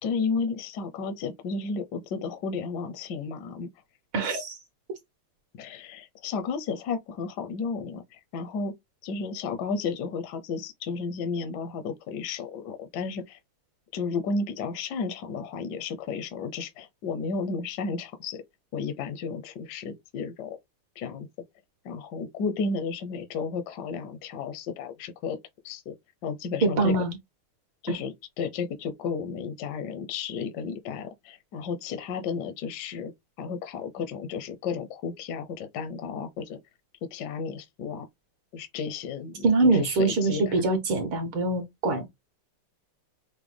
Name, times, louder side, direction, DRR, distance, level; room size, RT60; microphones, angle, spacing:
voice 1, 0.0-3.7 5.6-8.7 9.0-13.4 13.9-18.4 18.7-20.6 21.0-21.3 21.8-25.4 25.6-25.9 26.2-27.0 27.8-33.1 33.4-36.6 37.1-38.1 38.5-40.6, left 5 dB, 70° left, 1.0 m, -33 dB
voice 2, 4.1-4.6 26.6-27.2 39.4-42.1, right 3 dB, 70° right, 1.8 m, -24 dB
6.0 x 2.1 x 3.3 m
omnidirectional pair, 2.4 m